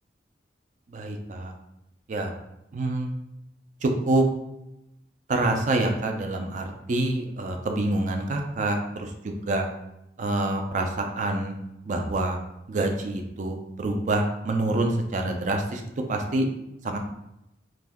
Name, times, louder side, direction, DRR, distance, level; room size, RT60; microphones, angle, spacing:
voice 1, 0.9-1.5 2.1-2.3 2.7-3.1 3.8-4.2 5.3-9.7 10.2-11.5 11.9-12.4 12.7-15.8 16.1-16.5 16.8-17.0, right 2 dB, 45° right, 4 dB, 0.4 m, -26 dB
2.6 x 2.1 x 3.4 m, 0.86 s
head